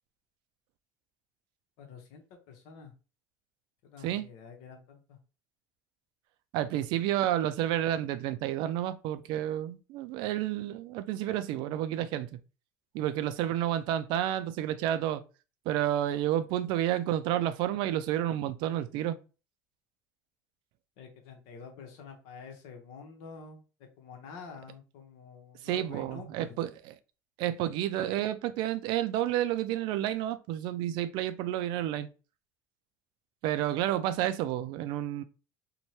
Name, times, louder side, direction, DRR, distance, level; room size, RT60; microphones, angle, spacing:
voice 1, 1.8-2.9 3.8-5.2 21.0-23.6 24.0-26.6, left 5 dB, 80° left, 0.8 m, -48 dB
voice 2, 6.5-12.3 12.9-15.2 15.7-19.2 25.6-26.9 27.4-32.1 33.4-35.2, right 12 dB, 70° right, 0.3 m, -30 dB
2.7 x 2.2 x 3.0 m
supercardioid pair, 115°, 8 cm